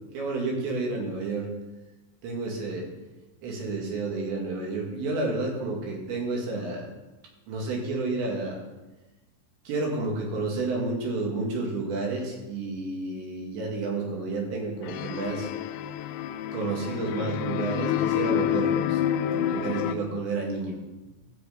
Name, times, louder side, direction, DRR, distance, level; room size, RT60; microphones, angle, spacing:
voice 1, 0.1-1.5 2.2-2.9 3.4-6.9 7.5-8.6 9.7-15.5 16.5-19.0 19.3-20.8, right 3 dB, 70° right, 0 dB, 4.3 m, -30 dB
sound 1, 14.8-20.0, left 11 dB, 85° left, 2.6 m, -28 dB
13.5 x 8.2 x 5.1 m, 1.1 s
omnidirectional pair, 5.4 m